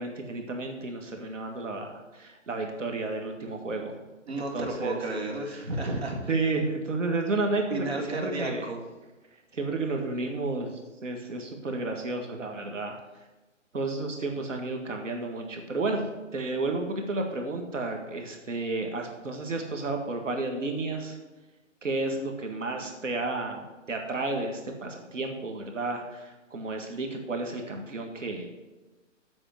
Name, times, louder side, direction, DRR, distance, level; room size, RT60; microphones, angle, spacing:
voice 1, 0.0-4.0 4.5-5.0 6.3-8.6 9.5-13.0 13.7-21.2 21.8-28.5, right 3 dB, 75° right, 3 dB, 2.0 m, -32 dB
voice 2, 4.3-6.2 7.7-8.8, right 2 dB, 55° right, 1 dB, 2.5 m, -32 dB
8.1 x 6.0 x 7.9 m, 1.1 s
hypercardioid pair, 170°, 38 cm